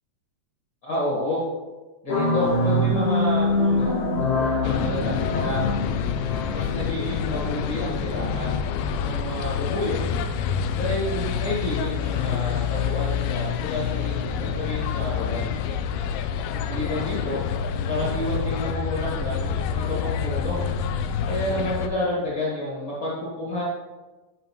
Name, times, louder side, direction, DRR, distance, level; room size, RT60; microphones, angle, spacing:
voice 1, 0.8-1.4 2.0-3.9 4.4-5.9 6.5-8.6 9.0-10.1 10.7-15.5 16.7-17.4 17.9-19.3 19.6-20.6 21.3-23.6, left 1 dB, 45° left, -7 dB, 1.9 m, -29 dB
sound 1, 2.1-8.4, left 1 dB, 60° left, 2.6 m, -25 dB
sound 2, 4.6-21.9, left 7 dB, 85° left, 2.3 m, -27 dB
11.0 x 5.1 x 3.1 m, 1.2 s
omnidirectional pair, 4.3 m